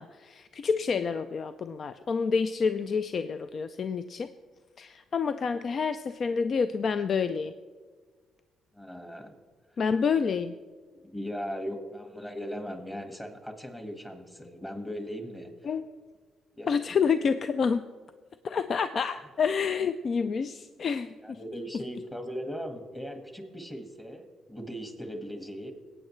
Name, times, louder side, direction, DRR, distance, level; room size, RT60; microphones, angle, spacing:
voice 1, 0.0-4.3 4.8-7.5 9.8-10.5 15.7-15.9 16.7-17.8 18.4-21.4, left 5 dB, 50° left, 11 dB, 0.3 m, -28 dB
voice 2, 8.7-9.4 10.9-15.5 16.5-16.7 21.2-25.7, equal, 15° left, 5 dB, 1.7 m, -38 dB
19.0 x 8.9 x 3.2 m, 1.5 s
cardioid pair, 90°, 0 cm